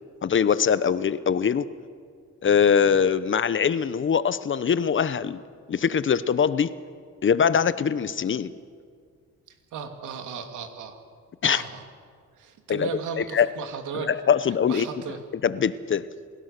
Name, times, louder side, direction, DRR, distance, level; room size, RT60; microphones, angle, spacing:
voice 1, 0.2-1.7 2.4-5.4 5.7-6.7 7.2-8.5 11.4-11.6 12.7-12.9 13.2-13.5 13.9-14.9 15.4-16.1, left 7 dB, 40° left, 15 dB, 0.9 m, -22 dB
voice 2, 9.7-11.0 11.4-11.8 12.4-14.1 14.6-15.2, right 6 dB, 80° right, 5 dB, 2.7 m, -35 dB
27.5 x 17.0 x 6.7 m, 2.1 s
cardioid pair, 90°, 30 cm